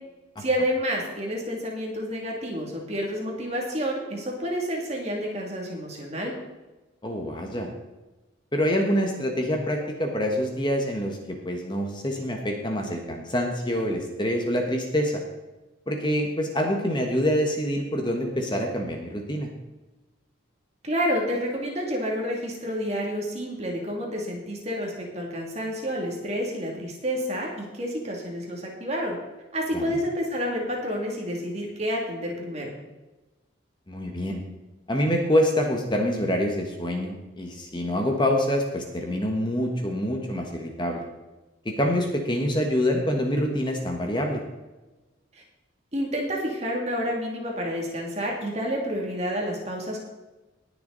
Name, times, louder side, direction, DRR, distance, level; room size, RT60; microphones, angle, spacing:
voice 1, 0.4-6.3 20.8-29.2 29.5-32.7 45.9-50.1, equal, 35° right, 0 dB, 2.5 m, -29 dB
voice 2, 7.0-7.7 8.5-15.2 15.9-19.5 29.7-30.0 33.9-34.4 34.9-41.0 41.6-44.4, equal, 25° left, 2 dB, 1.3 m, -26 dB
19.5 x 6.9 x 4.0 m, 1.1 s
head